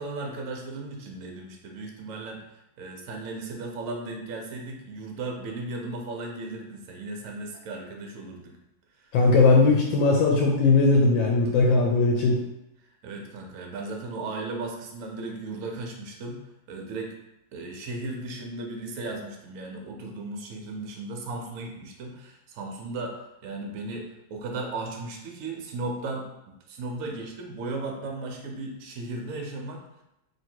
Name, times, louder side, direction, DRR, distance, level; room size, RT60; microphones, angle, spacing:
voice 1, 0.0-8.6 8.9-9.2 13.0-16.4 16.7-17.1 17.5-29.8, right 2 dB, 75° right, 1 dB, 0.7 m, -36 dB
voice 2, 9.1-12.4, left 3 dB, 75° left, -1 dB, 1.3 m, -19 dB
3.1 x 2.9 x 4.4 m, 0.87 s
omnidirectional pair, 2.2 m